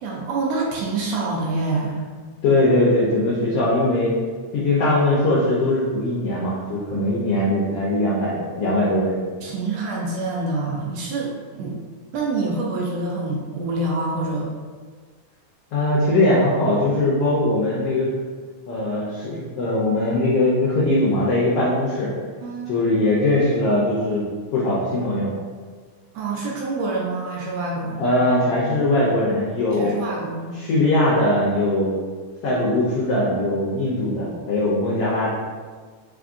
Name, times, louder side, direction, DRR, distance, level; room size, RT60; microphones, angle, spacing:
voice 1, 0.0-2.1 9.4-11.8 12.1-14.5 22.4-22.9 26.1-28.0 29.7-30.6, right 3 dB, 75° right, -2 dB, 1.6 m, -26 dB
voice 2, 2.4-4.1 4.5-9.2 15.7-18.1 18.7-22.1 22.7-24.2 24.5-25.3 28.0-29.9 30.5-32.0 32.4-35.3, left 1 dB, 80° left, -6 dB, 1.3 m, -20 dB
4.8 x 3.5 x 2.5 m, 1.5 s
omnidirectional pair, 3.6 m